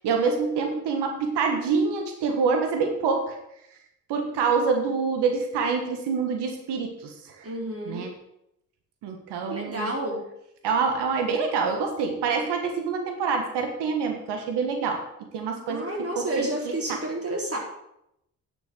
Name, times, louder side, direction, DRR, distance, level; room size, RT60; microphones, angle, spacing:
voice 1, 0.0-3.4 4.1-7.5 7.9-8.1 9.0-9.9 10.6-15.0 15.3-15.9 16.2-17.0, right 5 dB, 70° right, 4 dB, 1.6 m, -26 dB
voice 2, 7.4-8.1 9.5-10.2 15.7-17.6, right 1 dB, 35° right, 0 dB, 3.7 m, -30 dB
10.0 x 6.9 x 6.3 m, 0.81 s
hypercardioid pair, 45°, 42 cm